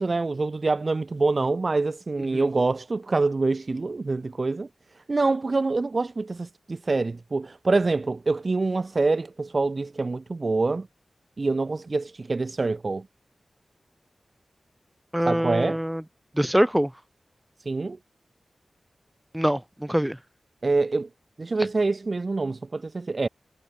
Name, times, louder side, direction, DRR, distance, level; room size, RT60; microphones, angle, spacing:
voice 1, 0.0-4.7 5.1-10.9 11.4-13.1 15.3-15.8 17.7-18.0 20.6-21.1 21.4-23.3, right 3 dB, 40° right, 5.3 m, -25 dB
voice 2, 15.1-16.0 16.4-16.9 19.3-20.2, equal, 5° right, 7.0 m, -24 dB
wide cardioid pair, 105°, 0 cm